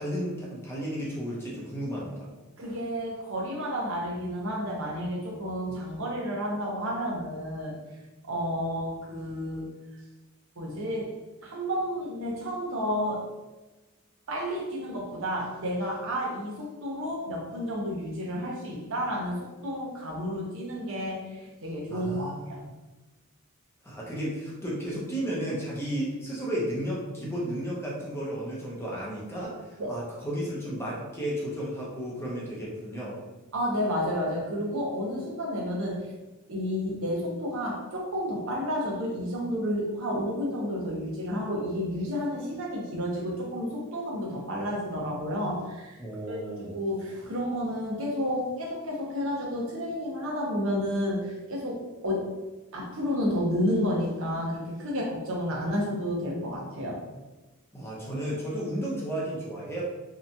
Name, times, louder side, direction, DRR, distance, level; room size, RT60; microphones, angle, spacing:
voice 1, 0.0-2.3 21.9-22.7 23.8-33.2 46.0-46.8 57.7-59.8, equal, 10° left, -5 dB, 0.5 m, -33 dB
voice 2, 2.6-7.8 8.2-9.7 10.6-11.1 11.4-13.3 14.3-22.6 29.8-30.0 33.5-36.1 36.5-46.0 46.3-46.4 46.7-52.3 52.7-57.0, equal, 60° right, -2 dB, 0.7 m, -31 dB
2.8 x 2.2 x 2.5 m, 1.1 s
head